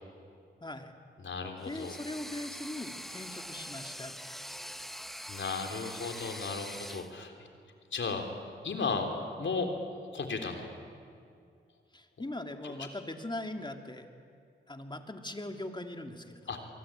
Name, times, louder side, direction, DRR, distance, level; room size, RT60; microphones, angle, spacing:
voice 1, 0.6-0.9 1.6-4.6 11.9-14.1 14.7-16.7, left 1 dB, 20° left, 5 dB, 2.7 m, -41 dB
voice 2, 1.2-2.0 5.3-7.3 7.9-8.3 8.6-9.1 9.4-9.7 10.0-10.7 12.6-12.7 16.5-16.6, left 4 dB, 70° left, 4 dB, 3.6 m, -35 dB
sound 1, 1.6-7.1, equal, ahead, 1.1 m, -43 dB
24.0 x 23.5 x 8.9 m, 2.3 s
cardioid pair, 50°, 20 cm